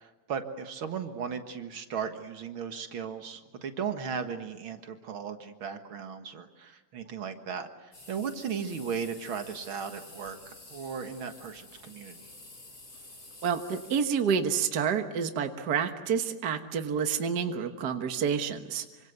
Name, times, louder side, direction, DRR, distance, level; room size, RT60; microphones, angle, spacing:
voice 1, 0.0-12.2, right 6 dB, 50° right, 7 dB, 1.8 m, -36 dB
sound 1, 7.9-14.0, left 2 dB, 30° left, 5.1 m, -50 dB
voice 2, 13.4-18.8, right 7 dB, 75° right, 7 dB, 0.9 m, -29 dB
27.0 x 25.0 x 8.1 m, 1.1 s
omnidirectional pair, 3.9 m